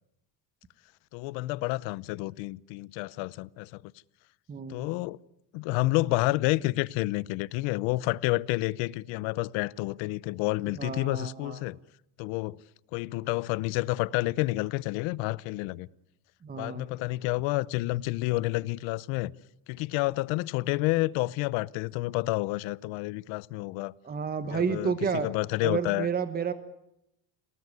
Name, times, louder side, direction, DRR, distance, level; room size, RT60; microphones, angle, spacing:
voice 1, 1.1-3.8 4.7-5.2 5.5-11.8 12.2-12.6 12.9-15.9 16.5-19.3 19.7-23.9 24.4-26.1, left 20 dB, 80° left, 0.9 m, -29 dB
voice 2, 4.5-5.0 10.8-11.6 16.4-16.9 24.0-25.3 25.6-26.5, right 6 dB, 20° right, 1.2 m, -31 dB
28.5 x 18.5 x 9.7 m
cardioid pair, 140°, 45 cm